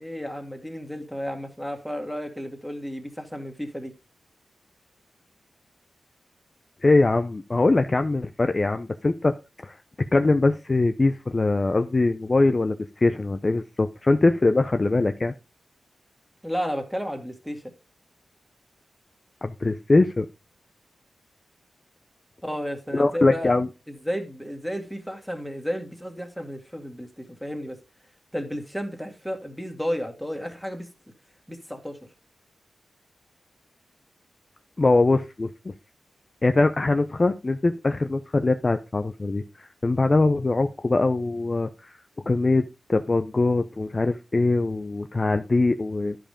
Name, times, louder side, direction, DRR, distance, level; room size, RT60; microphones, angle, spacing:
voice 1, 0.0-3.9 16.4-17.6 22.4-23.5 23.9-27.8 28.3-30.9 31.5-32.0, equal, ahead, 2.1 m, -32 dB
voice 2, 6.8-9.3 9.6-9.8 10.1-15.3 19.4-20.3 22.9-23.7 34.8-35.7 36.4-41.9 42.3-46.2, left 2 dB, 35° left, 0.5 m, -22 dB
11.0 x 5.1 x 5.1 m
wide cardioid pair, 85°, 0 cm